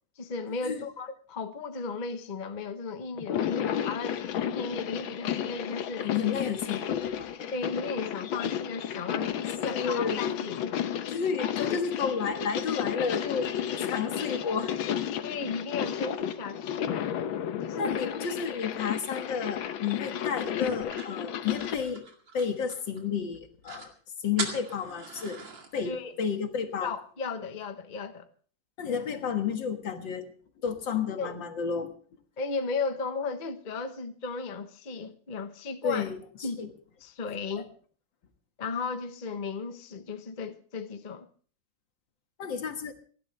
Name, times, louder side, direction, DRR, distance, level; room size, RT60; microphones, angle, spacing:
voice 1, 0.2-6.1 7.5-9.3 9.6-10.9 11.7-11.8 15.2-17.0 17.6-18.0 25.8-26.1 26.8-28.3 31.2-31.4 32.4-36.1 36.4-36.6 37.0-37.7 38.6-41.3, left 4 dB, 30° left, 0.9 m, -35 dB
sound 1, 3.2-21.8, left 9 dB, 90° left, 1.7 m, -32 dB
voice 2, 6.0-7.3 9.7-10.2 11.1-13.5 13.8-14.7 17.8-22.1 22.3-23.9 24.2-25.4 25.7-26.9 28.8-30.3 30.6-31.9 35.8-36.2 36.6-36.7 37.6-37.7 42.4-42.9, left 6 dB, 70° left, 2.3 m, -31 dB
sound 2, 20.7-23.0 23.4-23.5 23.6-23.9 24.4-25.7, right 4 dB, 75° right, 3.0 m, -39 dB
29.0 x 11.5 x 3.3 m
omnidirectional pair, 2.1 m